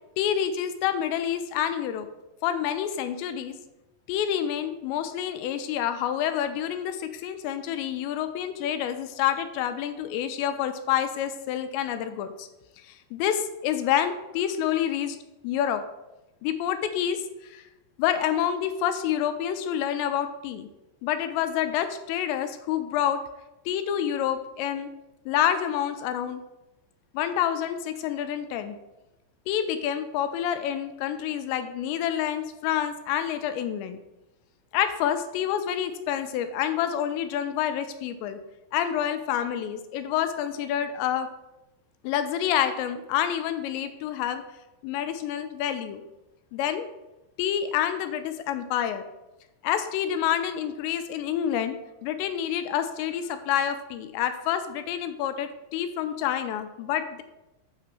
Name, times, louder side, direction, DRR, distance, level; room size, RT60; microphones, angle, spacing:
voice 1, 0.2-2.1 2.4-3.6 4.1-12.5 12.8-15.2 15.4-15.8 16.4-17.6 18.0-20.7 21.0-23.2 23.7-24.9 25.3-26.4 27.1-28.8 29.5-34.0 34.7-38.4 38.7-41.3 42.0-44.4 44.8-46.0 46.5-46.9 47.4-49.0 49.6-51.8 52.0-57.2, left 10 dB, 85° left, 9 dB, 2.7 m, -28 dB
8.4 x 3.2 x 6.0 m, 0.98 s
omnidirectional pair, 5.3 m